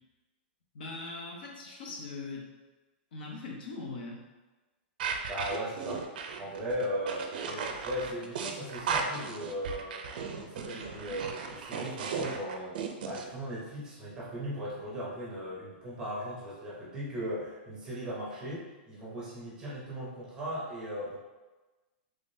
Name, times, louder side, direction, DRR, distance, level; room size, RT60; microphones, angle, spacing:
voice 1, 0.7-2.5 3.1-4.2, left 3 dB, 60° left, -1 dB, 0.9 m, -40 dB
sound 1, 5.0-13.2, right 5 dB, 55° right, 0.4 m, -36 dB
voice 2, 5.3-6.0 6.4-10.0 10.4-21.2, equal, 10° right, -6 dB, 0.8 m, -37 dB
3.6 x 3.3 x 2.6 m, 1.2 s
supercardioid pair, 175°, 6 cm